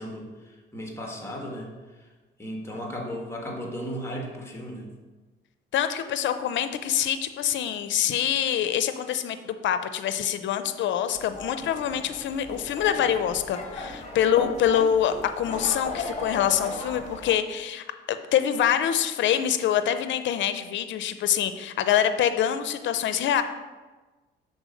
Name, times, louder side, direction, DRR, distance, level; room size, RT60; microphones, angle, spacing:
voice 1, 0.0-1.7 2.0-2.1 2.4-4.9, equal, 10° left, 0 dB, 1.5 m, -35 dB
voice 2, 5.7-23.4, left 9 dB, 70° left, 10 dB, 0.5 m, -25 dB
sound 1, 11.1-17.3, left 2 dB, 35° left, 1.4 m, -36 dB
6.2 x 4.1 x 5.1 m, 1.2 s
cardioid pair, 90°, 20 cm